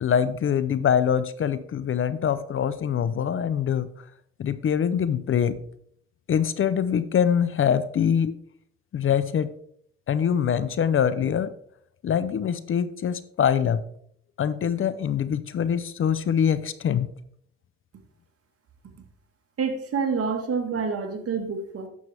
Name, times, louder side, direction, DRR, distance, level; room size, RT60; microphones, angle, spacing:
voice 1, 0.0-3.9 4.4-5.6 6.3-8.3 8.9-9.5 10.1-11.5 12.0-13.8 14.4-17.1, left 8 dB, 45° left, 14 dB, 0.5 m, -24 dB
voice 2, 19.6-21.9, right 5 dB, 50° right, 5 dB, 1.6 m, -27 dB
9.7 x 6.9 x 3.4 m, 0.66 s
cardioid pair, 90°, 30 cm